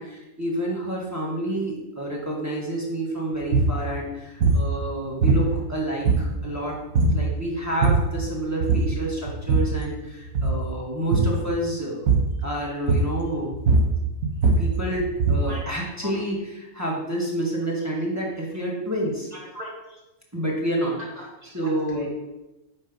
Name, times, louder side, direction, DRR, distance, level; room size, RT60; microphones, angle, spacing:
voice 1, 0.0-12.1 12.4-13.5 14.6-19.3 20.3-21.0 21.5-22.1, right 1 dB, 10° right, -5 dB, 1.4 m, -29 dB
sound 1, 3.4-3.8 4.4-4.7 5.2-5.7 6.0-6.5 6.9-7.3 7.6-8.2 8.6-9.0 9.3-9.8 10.2-10.6 11.1-11.4 12.1-12.4 12.9-13.2 13.5-15.6, right 3 dB, 85° right, 1.5 m, -21 dB
voice 2, 19.3-20.0 21.2-22.1, equal, 30° right, -4 dB, 1.3 m, -39 dB
8.9 x 3.2 x 5.3 m, 1.0 s
omnidirectional pair, 1.5 m